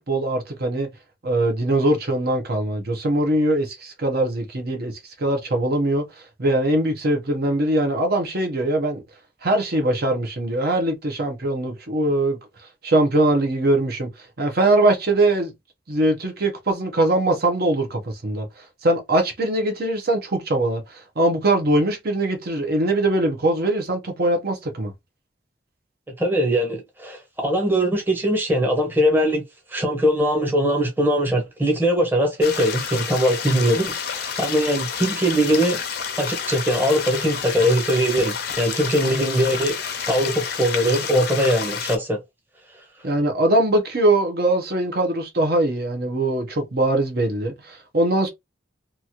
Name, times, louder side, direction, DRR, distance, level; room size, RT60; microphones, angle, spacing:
voice 1, 0.1-0.9 1.2-6.1 6.4-9.0 9.4-12.4 12.8-14.1 14.4-15.5 15.9-24.9 43.0-48.3, right 1 dB, 55° right, 0.8 m, -21 dB
voice 2, 26.2-29.4 29.7-35.8 36.2-39.8 40.1-42.2, equal, 10° right, 0.9 m, -21 dB
sound 1, 32.4-42.0, left 7 dB, 55° left, 0.6 m, -29 dB
3.0 x 2.4 x 2.8 m
head